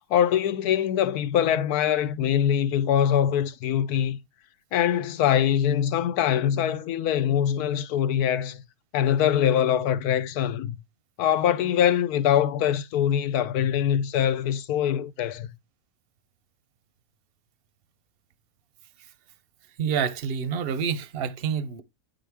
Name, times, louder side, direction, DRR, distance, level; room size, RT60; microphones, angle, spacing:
voice 1, 0.1-4.2 4.7-8.6 8.9-10.8 11.2-15.5, left 9 dB, 90° left, 1.2 m, -23 dB
voice 2, 19.8-21.8, right 7 dB, 55° right, 0.7 m, -28 dB
9.9 x 3.8 x 3.4 m
omnidirectional pair, 1.6 m